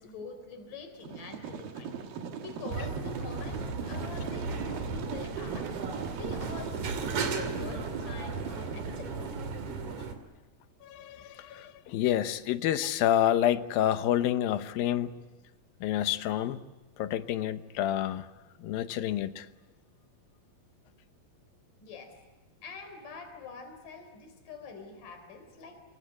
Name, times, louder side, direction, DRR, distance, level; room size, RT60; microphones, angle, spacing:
voice 1, 0.0-5.7 6.1-9.1 21.8-22.2 22.6-25.8, left 5 dB, 65° left, 5.2 m, -45 dB
sound 1, 1.0-10.1, right 6 dB, 80° right, 3.7 m, -40 dB
sound 2, 2.7-10.2, right 4 dB, 55° right, 3.8 m, -36 dB
voice 2, 10.8-15.2 15.8-16.6 17.0-18.3 18.6-19.5, left 11 dB, 90° left, 2.8 m, -28 dB
27.0 x 25.0 x 8.2 m
omnidirectional pair, 4.0 m